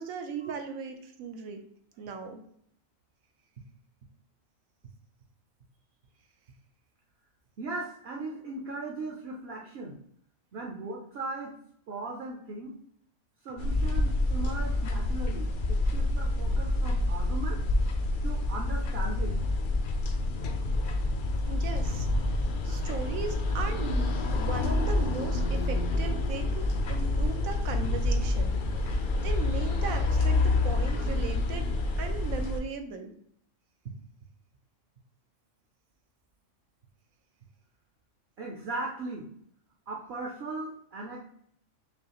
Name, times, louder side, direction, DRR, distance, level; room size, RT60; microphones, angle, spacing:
voice 1, 0.0-1.7 2.0-2.4 21.5-22.4 22.6-33.1, right 5 dB, 85° right, 5 dB, 1.1 m, -38 dB
voice 2, 7.6-10.0 10.5-11.6 11.9-12.8 13.4-17.6 18.2-19.4 31.0-31.1 33.8-33.9 38.4-39.3 39.9-41.2, right 3 dB, 60° right, -1 dB, 0.8 m, -38 dB
sound 1, 13.6-32.6, left 2 dB, 65° left, 0.5 m, -28 dB
5.5 x 2.4 x 2.9 m, 0.67 s
omnidirectional pair, 1.4 m